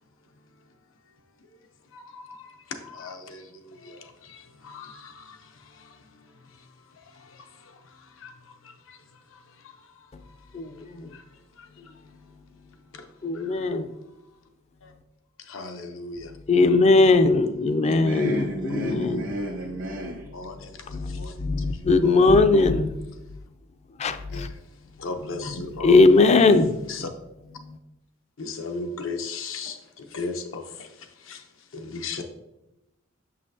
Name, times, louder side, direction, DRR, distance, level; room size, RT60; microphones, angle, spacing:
voice 1, 10.5-11.1 13.2-13.9 16.5-19.3 20.9-22.9 24.0-24.5 25.7-26.8 27.6-27.8, left 3 dB, 35° left, 10 dB, 0.4 m, -20 dB
voice 2, 15.5-16.2 20.3-20.5 21.2-21.3 22.0-22.3 24.3-24.4 25.0-26.0 26.9-27.1 28.4-29.7 30.1-30.6 31.7-32.2, left 3 dB, 80° left, 5 dB, 0.7 m, -33 dB
voice 3, 17.8-20.3, right 1 dB, 75° right, -2 dB, 1.0 m, -32 dB
6.5 x 5.5 x 2.7 m, 0.92 s
head